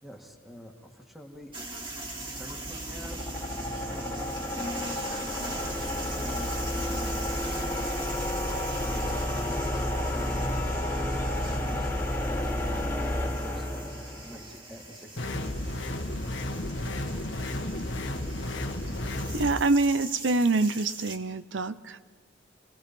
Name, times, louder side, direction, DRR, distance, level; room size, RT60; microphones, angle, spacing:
voice 1, 0.0-1.5 2.3-4.0 4.7-8.2 8.9-15.6, equal, ahead, 2 dB, 2.1 m, -48 dB
sound 1, 1.5-14.6, left 1 dB, 15° left, 2.6 m, -31 dB
sound 2, 1.5-21.2, right 2 dB, 25° right, 2.2 m, -41 dB
sound 3, 15.2-19.6, left 1 dB, 85° left, 1.6 m, -33 dB
voice 2, 19.3-22.1, right 3 dB, 85° right, 13 dB, 0.7 m, -25 dB
29.0 x 18.5 x 5.4 m, 1.4 s
head